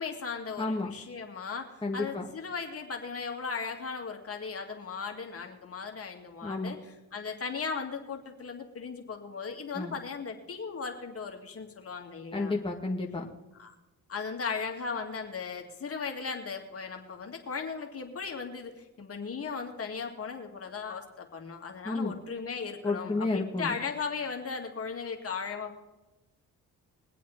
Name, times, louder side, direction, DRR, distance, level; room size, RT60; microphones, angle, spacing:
voice 1, 0.0-12.5 13.6-13.7 14.1-25.8, left 5 dB, 45° left, 2 dB, 2.4 m, -37 dB
voice 2, 0.6-0.9 1.8-2.3 6.4-6.8 9.7-10.0 12.3-13.3 21.8-22.2 22.8-23.8, left 3 dB, 15° left, -1 dB, 1.9 m, -31 dB
22.0 x 8.3 x 4.3 m, 1.0 s
cardioid pair, 75°, 33 cm